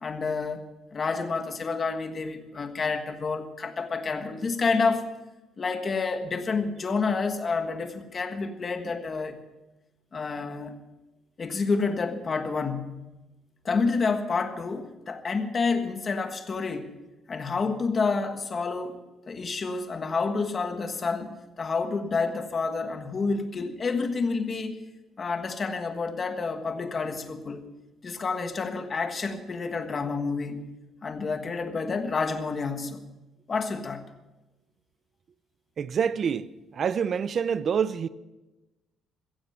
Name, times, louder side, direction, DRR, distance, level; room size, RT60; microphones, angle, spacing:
voice 1, 0.0-5.0 5.6-9.4 10.1-10.8 11.4-13.1 13.6-16.9 17.3-19.0 19.3-21.3 21.6-24.8 25.2-27.7 28.0-30.6 31.0-33.0 33.5-34.1, left 4 dB, 25° left, 1.5 m, -29 dB
voice 2, 35.8-38.1, right 7 dB, 35° right, 0.6 m, -27 dB
15.5 x 15.0 x 5.7 m
cardioid pair, 170°, 0 cm